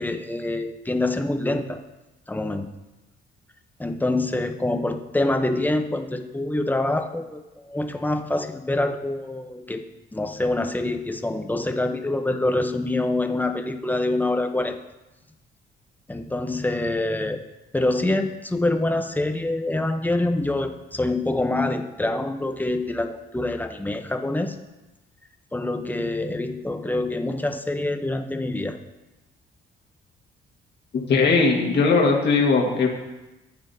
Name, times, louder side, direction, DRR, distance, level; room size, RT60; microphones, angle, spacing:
voice 1, 0.0-1.8 2.3-2.7 3.8-9.8 10.1-14.8 16.1-17.4 17.7-24.6 25.5-28.8, left 2 dB, 10° left, 6 dB, 0.9 m, -25 dB
voice 2, 30.9-32.9, left 4 dB, 60° left, -1 dB, 1.8 m, -19 dB
14.0 x 8.7 x 2.8 m, 1.0 s
cardioid pair, 90°, 20 cm